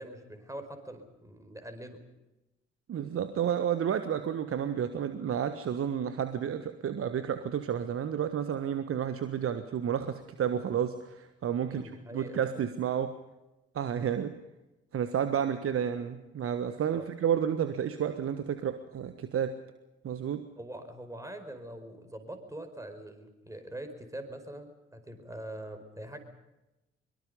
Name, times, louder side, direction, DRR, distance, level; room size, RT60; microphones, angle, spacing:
voice 1, 0.0-2.0 11.6-12.4 16.9-17.1 20.6-26.2, right 1 dB, 10° right, 7 dB, 4.9 m, -43 dB
voice 2, 2.9-11.8 12.1-13.2 13.7-14.3 14.9-19.6 20.0-20.5, right 8 dB, 45° right, 10 dB, 1.4 m, -31 dB
23.5 x 23.5 x 5.5 m, 0.99 s
figure-of-eight pair, 45°, 31 cm